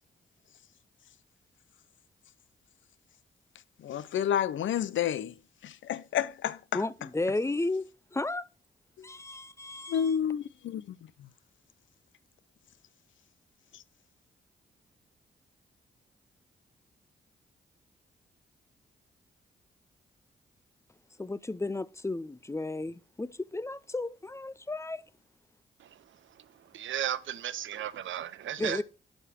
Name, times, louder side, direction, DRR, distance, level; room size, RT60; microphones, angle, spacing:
voice 1, 3.8-5.3 5.6-6.8 9.0-9.1 9.9-11.0 13.7-13.8, left 9 dB, 70° left, 0.5 m, -30 dB
voice 2, 6.7-8.5 9.0-10.1 21.2-25.0 28.6-28.8, left 2 dB, 15° left, 0.5 m, -33 dB
voice 3, 26.7-28.8, right 10 dB, 70° right, 0.6 m, -35 dB
11.5 x 5.1 x 4.3 m
supercardioid pair, 45°, 21 cm